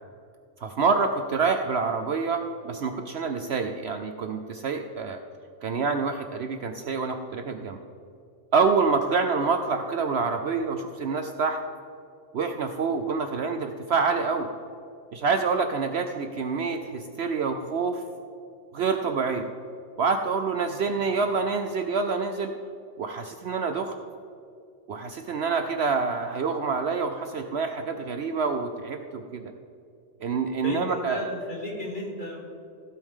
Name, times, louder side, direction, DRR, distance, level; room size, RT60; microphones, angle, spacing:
voice 1, 0.6-5.2 5.6-7.8 8.5-11.6 12.3-14.5 15.1-18.0 18.7-19.5 20.0-22.5 23.0-23.9 24.9-29.5 30.2-31.2, right 4 dB, 60° right, 6 dB, 0.8 m, -27 dB
voice 2, 20.8-21.2 30.6-32.4, left 1 dB, 35° left, -3 dB, 2.6 m, -34 dB
15.5 x 8.4 x 3.7 m, 2.5 s
omnidirectional pair, 1.4 m